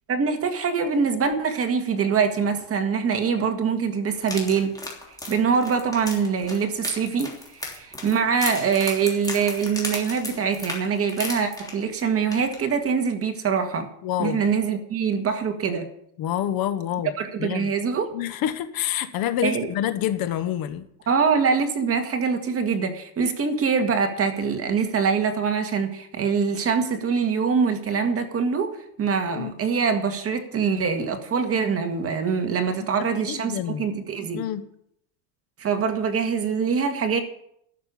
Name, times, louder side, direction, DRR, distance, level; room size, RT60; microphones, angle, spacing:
voice 1, 0.1-4.7 5.3-13.9 14.2-15.9 17.2-18.1 19.4-19.7 21.1-34.4 35.6-37.2, right 6 dB, 30° right, 6 dB, 1.8 m, -24 dB
sound 1, 4.2-12.0 12.3-12.6 12.9-13.0, left 2 dB, 5° left, 3.2 m, -34 dB
voice 2, 14.0-14.5 16.2-17.1 17.4-17.7 18.1-20.9 29.3-29.5 33.2-33.9 34.3-34.6, left 11 dB, 45° left, 12 dB, 1.1 m, -27 dB
12.5 x 6.7 x 9.9 m, 0.72 s
supercardioid pair, 130°, 48 cm